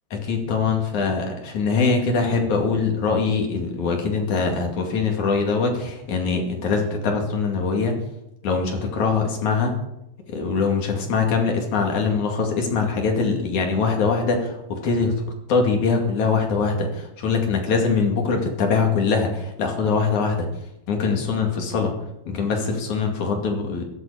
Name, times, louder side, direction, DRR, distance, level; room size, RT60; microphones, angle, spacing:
voice 1, 0.1-8.0 8.4-9.7 10.3-14.6 14.8-15.2 15.5-20.4 20.9-21.9 22.3-23.8, left 4 dB, 50° left, 2 dB, 3.4 m, -22 dB
15.5 x 13.5 x 5.0 m, 0.87 s
omnidirectional pair, 5.0 m